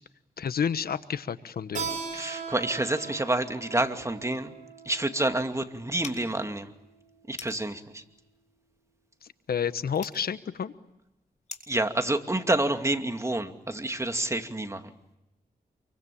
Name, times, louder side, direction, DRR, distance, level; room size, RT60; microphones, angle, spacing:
voice 1, 0.4-1.9 9.2-10.7, left 7 dB, 75° left, 13 dB, 1.2 m, -30 dB
Keyboard (musical), 1.8-7.0, right 5 dB, 50° right, 6.2 m, -40 dB
voice 2, 2.1-4.5 4.9-6.7 7.3-8.0 11.7-14.9, right 1 dB, 20° right, 7 dB, 2.5 m, -28 dB
sound 1, 6.0-11.9, left 4 dB, 50° left, 5.4 m, -48 dB
28.0 x 24.0 x 8.6 m, 0.87 s
cardioid pair, 70°, 16 cm